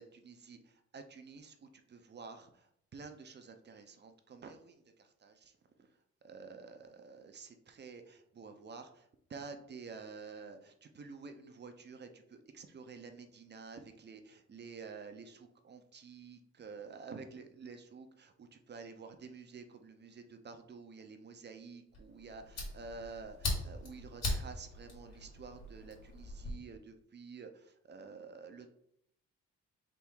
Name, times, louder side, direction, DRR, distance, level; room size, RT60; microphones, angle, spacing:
voice 1, 0.0-5.5 5.8-5.9 6.2-28.7, right 4 dB, 35° right, 7 dB, 0.6 m, -50 dB
Fire, 21.9-26.5, left 2 dB, 55° left, 1.8 m, -40 dB
3.5 x 3.0 x 4.5 m, 0.71 s
cardioid pair, 90°, 30 cm